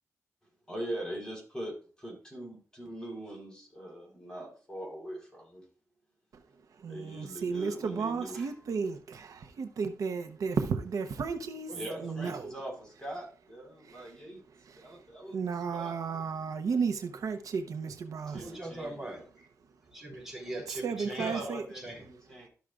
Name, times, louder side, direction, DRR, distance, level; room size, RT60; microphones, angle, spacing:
voice 1, 0.7-5.6 6.9-8.5 11.7-14.4 14.8-15.4 15.7-16.0 18.3-19.0 21.2-22.5, right 1 dB, 15° left, 4.0 m, -41 dB
voice 2, 6.8-11.7 12.0-12.5 13.9-14.1 14.7-14.9 15.3-18.6 20.7-21.6, right 5 dB, 85° right, 0.8 m, -33 dB
voice 3, 11.7-12.4 18.4-19.5 19.9-22.0, right 1 dB, 5° right, 3.5 m, -41 dB
12.5 x 6.3 x 2.4 m
wide cardioid pair, 120°, 6 cm